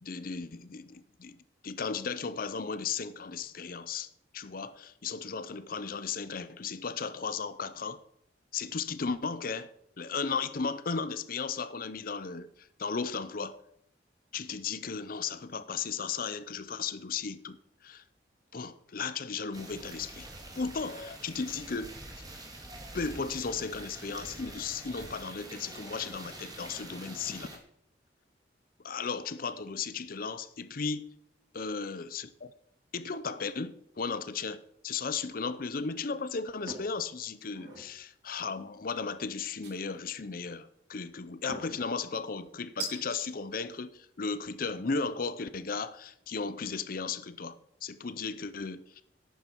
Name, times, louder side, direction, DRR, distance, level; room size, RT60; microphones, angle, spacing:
voice 1, 0.0-1.4 1.6-8.0 8.5-13.6 14.3-17.6 17.8-18.0 18.5-20.3 20.6-22.2 22.9-27.6 28.8-31.1 31.5-32.5 32.9-49.0, left 5 dB, 50° left, 0.6 m, -35 dB
sound 1, 19.5-27.6, right 2 dB, 20° right, 2.1 m, -46 dB
sound 2, 36.7-37.0 37.4-37.9 39.6-40.2 41.5-41.8 42.8-43.3, right 3 dB, 65° right, 3.2 m, -41 dB
11.5 x 9.2 x 4.6 m
head